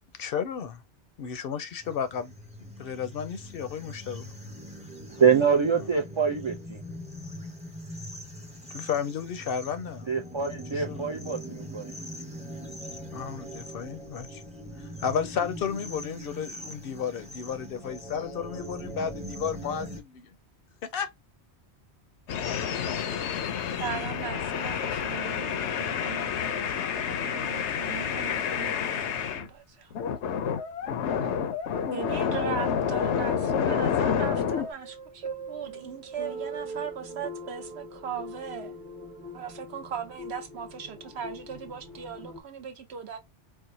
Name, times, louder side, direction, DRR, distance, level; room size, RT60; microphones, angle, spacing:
voice 1, 0.2-0.8 1.2-2.3 2.6-4.3 8.7-10.1 10.7-11.0 13.1-14.4 14.8-20.3 20.8-21.1, left 7 dB, 65° left, 0.7 m, -33 dB
sound 1, 1.8-20.0, equal, 10° right, 0.6 m, -41 dB
voice 2, 5.1-6.8 10.1-11.9, right 6 dB, 50° right, 0.3 m, -25 dB
sound 2, 22.3-29.5 29.9-34.7, left 7 dB, 85° left, 0.9 m, -29 dB
voice 3, 23.8-29.9 31.2-31.3 31.9-38.8 39.3-43.2, right 7 dB, 75° right, 1.0 m, -38 dB
sound 3, 34.5-42.4, right 1 dB, 30° right, 1.1 m, -41 dB
4.5 x 2.0 x 2.7 m
omnidirectional pair, 1.1 m